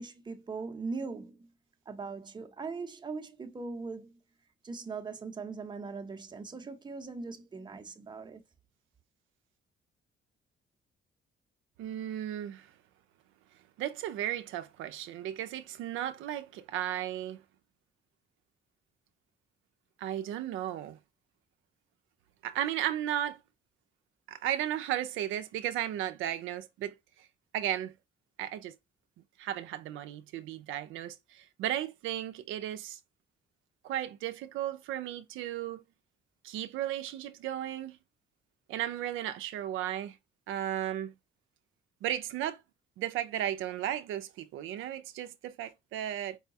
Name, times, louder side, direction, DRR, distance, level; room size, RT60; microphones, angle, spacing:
voice 1, 0.0-1.5 1.9-4.2 4.6-8.4, right 4 dB, 20° right, 0.6 m, -40 dB
voice 2, 11.8-12.7 13.8-17.4 20.0-21.0 22.4-23.4 24.3-27.0 27.5-27.9 28.4-28.7 29.4-33.0 33.8-35.8 36.4-38.0 38.7-40.2 40.5-41.1 42.0-42.6 43.0-46.4, right 11 dB, 85° right, 0.4 m, -35 dB
4.7 x 2.2 x 2.6 m
cardioid pair, 90°, 20 cm